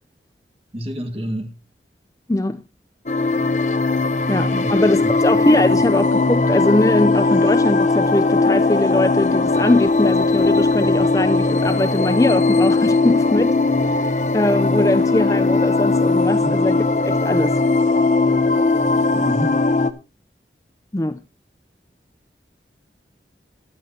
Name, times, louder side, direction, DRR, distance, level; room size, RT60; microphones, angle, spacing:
voice 1, 0.7-1.6 4.4-4.7 5.0-5.1 16.4-16.5 19.1-19.6, right 1 dB, 35° right, 1.9 m, -28 dB
voice 2, 2.3-2.6 4.3-13.6 13.8-17.6 20.9-21.2, left 1 dB, 20° left, 0.5 m, -21 dB
sound 1, 3.1-19.9, left 3 dB, 40° left, 0.9 m, -18 dB
15.5 x 11.0 x 2.8 m
head